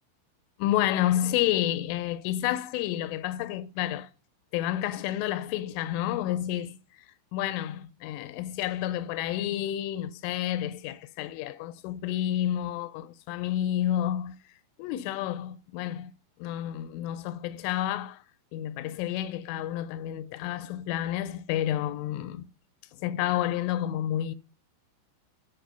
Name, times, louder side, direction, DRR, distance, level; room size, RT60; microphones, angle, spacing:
voice 1, 0.6-4.1 4.5-14.4 14.8-16.1 16.4-18.2 18.5-22.5 22.9-24.4, left 12 dB, 85° left, 3.0 m, -30 dB
10.0 x 4.5 x 6.9 m
omnidirectional pair, 5.6 m